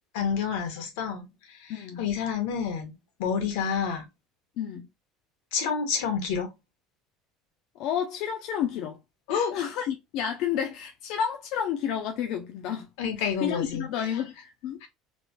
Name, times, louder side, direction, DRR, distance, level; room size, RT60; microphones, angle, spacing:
voice 1, 0.1-2.9 3.2-4.1 5.5-6.5 9.3-9.5 13.0-13.9 14.8-14.9, left 6 dB, 90° left, 1.1 m, -29 dB
voice 2, 1.7-2.1 4.6-4.9 7.8-9.0 9.5-12.9 13.2-14.8, left 9 dB, 60° left, 0.4 m, -30 dB
3.2 x 2.1 x 2.8 m
cardioid pair, 155°, 0 cm